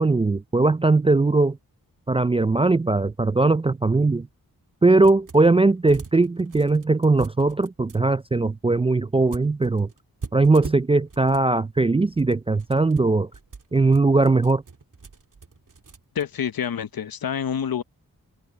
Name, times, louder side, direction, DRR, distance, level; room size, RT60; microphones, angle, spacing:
voice 1, 0.0-1.6 2.1-4.3 4.8-9.9 10.3-13.3 13.7-14.6, right 3 dB, 15° right, 0.3 m, -20 dB
sound 1, 5.0-5.6 5.9-8.0 9.3-11.5 12.0-16.2, right 4 dB, 55° right, 2.5 m, -41 dB
voice 2, 16.1-17.8, left 8 dB, 70° left, 0.9 m, -27 dB
cardioid pair, 65°, 37 cm